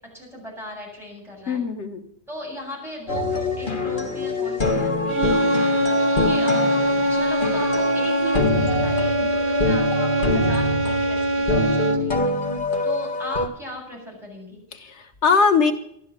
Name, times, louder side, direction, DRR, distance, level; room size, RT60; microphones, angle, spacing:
voice 1, 0.1-1.6 2.3-4.9 5.3-5.6 6.1-14.6, equal, ahead, -4 dB, 7.9 m, -37 dB
voice 2, 1.5-2.0 14.7-15.7, left 5 dB, 90° left, 7 dB, 1.6 m, -21 dB
sound 1, 3.1-13.5, left 2 dB, 50° left, 1.8 m, -24 dB
sound 2, 5.1-12.2, right 1 dB, 65° right, 1.6 m, -23 dB
13.0 x 12.0 x 7.3 m, 0.71 s
omnidirectional pair, 1.1 m